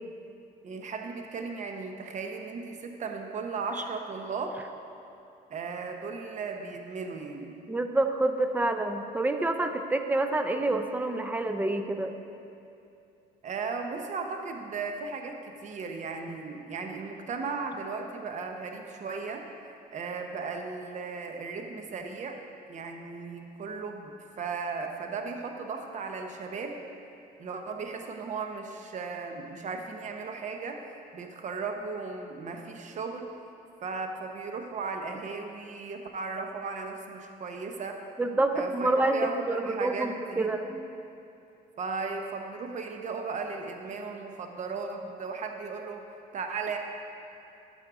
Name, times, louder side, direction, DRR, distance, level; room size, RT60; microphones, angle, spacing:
voice 1, 0.6-4.6 5.5-7.6 13.4-19.4 19.9-22.4 22.7-26.8 27.4-30.8 31.1-33.3 33.8-38.0 38.5-40.5 41.8-46.0 46.3-46.8, right 4 dB, 45° right, 4 dB, 0.9 m, -36 dB
voice 2, 7.7-12.2 38.2-40.9, right 2 dB, 10° right, 7 dB, 0.5 m, -27 dB
11.5 x 6.4 x 3.7 m, 2.7 s
cardioid pair, 110°, 17 cm